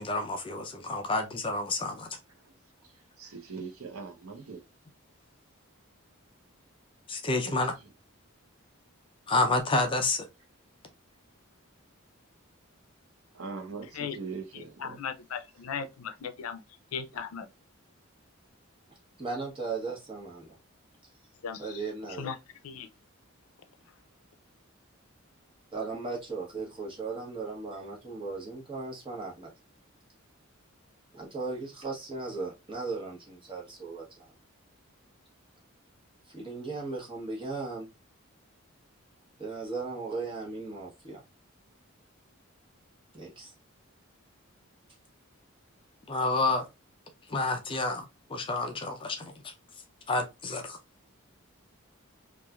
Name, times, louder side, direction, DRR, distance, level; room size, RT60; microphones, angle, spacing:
voice 1, 0.0-2.1 7.1-7.7 9.3-10.2 46.1-46.7 47.3-48.0 48.3-49.3 50.1-50.8, left 2 dB, 25° left, 0.4 m, -29 dB
voice 2, 3.2-4.6 7.4-7.6 13.3-15.0, right 4 dB, 85° right, 0.7 m, -41 dB
voice 3, 14.5-16.6 16.9-17.5 21.4-21.8 22.2-22.4 22.6-22.9, left 6 dB, 90° left, 0.4 m, -37 dB
voice 4, 19.2-20.5 21.6-22.3 25.7-29.5 31.1-34.3 36.3-37.9 39.4-41.2 43.1-43.5, right 3 dB, 25° right, 1.0 m, -37 dB
3.1 x 2.4 x 2.3 m
head